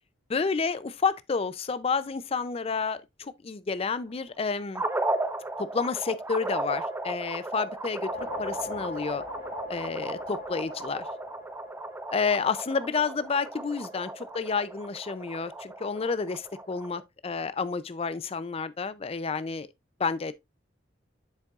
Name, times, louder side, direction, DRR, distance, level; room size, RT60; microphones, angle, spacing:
voice 1, 0.3-4.8 5.6-9.2 9.7-11.1 12.1-19.7 20.0-20.3, left 5 dB, 30° left, 0.4 m, -30 dB
sound 1, 4.7-17.0, right 2 dB, 15° right, 0.7 m, -35 dB
sound 2, 7.8-12.4, left 4 dB, 65° left, 1.9 m, -41 dB
8.2 x 6.8 x 2.4 m
head